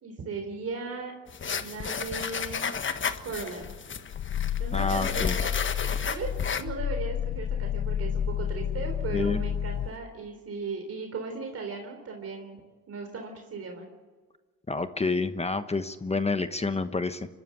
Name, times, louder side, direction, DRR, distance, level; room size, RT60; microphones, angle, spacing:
voice 1, 0.0-1.1 1.6-2.7 3.2-3.7 4.6-5.5 6.1-6.3 6.6-12.6 12.9-13.9, right 4 dB, 50° right, 3 dB, 3.8 m, -37 dB
sound 1, 1.3-6.6, left 6 dB, 40° left, 1.5 m, -33 dB
Growling, 3.6-10.0, left 9 dB, 60° left, 0.9 m, -30 dB
voice 2, 4.7-5.4 9.1-9.4 14.7-17.3, left 3 dB, 20° left, 10 dB, 1.1 m, -28 dB
24.0 x 13.0 x 9.9 m, 1.4 s
cardioid pair, 90°, 30 cm